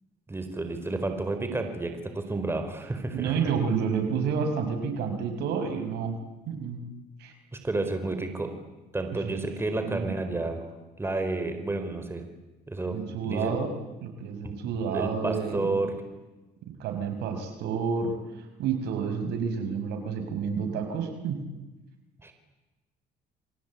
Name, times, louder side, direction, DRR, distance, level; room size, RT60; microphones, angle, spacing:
voice 1, 0.3-3.3 7.6-8.5 8.9-10.6 11.0-12.2 12.7-13.0 13.2-13.6 14.4-14.5 14.9-15.9 22.2-22.3, right 2 dB, 15° right, 7 dB, 4.5 m, -30 dB
voice 2, 3.1-6.1 6.5-6.8 7.2-7.3 9.1-9.5 9.8-10.4 12.9-13.7 14.0-15.8 16.7-21.4, right 6 dB, 80° right, 6 dB, 5.6 m, -30 dB
29.0 x 23.0 x 8.6 m, 1.1 s
cardioid pair, 110°, 17 cm